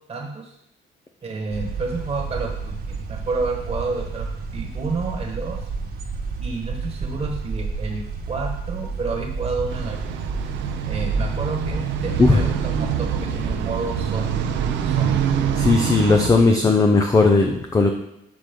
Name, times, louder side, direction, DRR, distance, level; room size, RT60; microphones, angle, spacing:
voice 1, 0.1-0.6 1.2-5.6 6.4-8.0 8.3-10.2 10.8-14.4 14.8-15.3 16.3-16.8, right 3 dB, 30° right, 1 dB, 1.4 m, -30 dB
sound 1, 1.5-15.7, right 4 dB, 60° right, 1.3 m, -31 dB
sound 2, 9.7-16.3, right 8 dB, 90° right, 0.7 m, -25 dB
voice 2, 15.6-17.9, left 3 dB, 20° left, 4 dB, 0.6 m, -17 dB
6.2 x 6.0 x 5.2 m, 0.79 s
cardioid pair, 120°, 18 cm